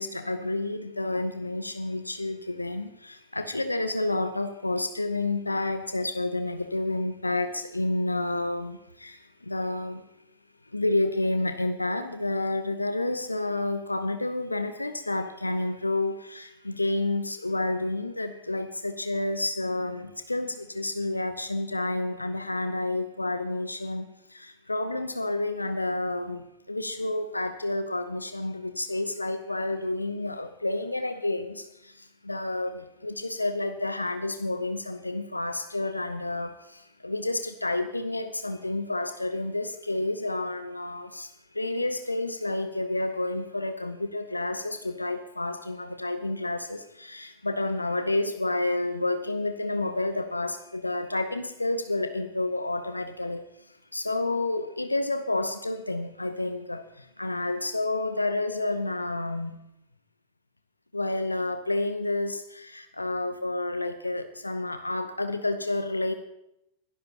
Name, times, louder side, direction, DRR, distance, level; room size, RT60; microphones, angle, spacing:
voice 1, 0.0-10.0 10.7-53.4 53.9-59.6 60.9-66.1, left 2 dB, 85° left, 10 dB, 0.7 m, -30 dB
22.0 x 12.0 x 2.9 m, 0.82 s
figure-of-eight pair, 90°, 0 cm